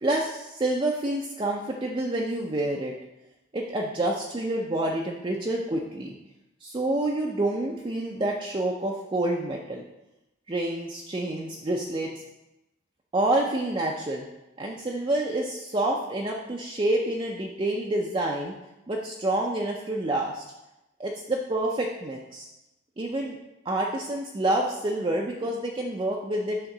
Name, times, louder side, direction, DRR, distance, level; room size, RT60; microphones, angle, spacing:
voice 1, 0.0-2.9 3.5-6.1 6.6-9.8 10.5-12.1 13.1-14.2 14.6-18.5 18.9-20.4 21.0-22.5 23.0-23.4 23.7-26.6, right 1 dB, 25° right, -1 dB, 0.5 m, -28 dB
6.4 x 3.6 x 6.0 m, 0.94 s
head